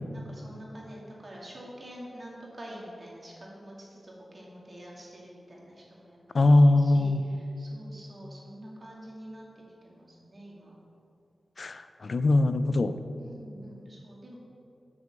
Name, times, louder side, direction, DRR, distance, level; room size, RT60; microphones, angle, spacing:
voice 1, 0.1-6.4 6.8-10.7 13.2-14.4, equal, 45° right, -4 dB, 2.4 m, -46 dB
voice 2, 6.3-7.2 11.6-13.0, left 2 dB, 60° left, 11 dB, 0.5 m, -21 dB
7.2 x 6.2 x 7.5 m, 2.6 s
cardioid pair, 60°, 0 cm